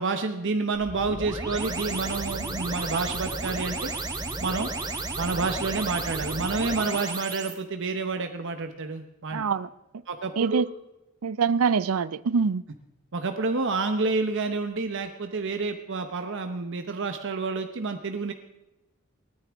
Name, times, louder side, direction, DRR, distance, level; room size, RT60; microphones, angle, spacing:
voice 1, 0.0-3.9 4.4-4.7 5.2-9.4 10.1-10.6 13.1-18.3, right 3 dB, 60° right, 0.8 m, -29 dB
sound 1, 0.7-7.5, right 2 dB, 20° right, 1.3 m, -33 dB
voice 2, 9.3-9.7 10.4-10.7 11.2-12.6, right 5 dB, 85° right, 0.5 m, -24 dB
29.0 x 9.7 x 3.5 m
head